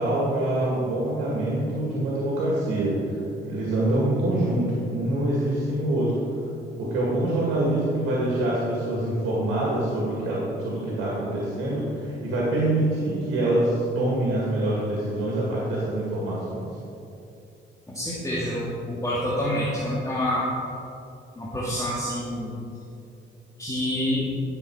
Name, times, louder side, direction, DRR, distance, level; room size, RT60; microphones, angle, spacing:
voice 1, 0.0-2.9 3.4-6.2 6.8-16.7, right 1 dB, 90° right, -5 dB, 2.1 m, -25 dB
voice 2, 17.9-20.5 21.4-22.6 23.6-24.3, left 1 dB, 15° left, -7 dB, 1.8 m, -27 dB
12.0 x 7.0 x 4.8 m, 2.7 s
cardioid pair, 90°, 20 cm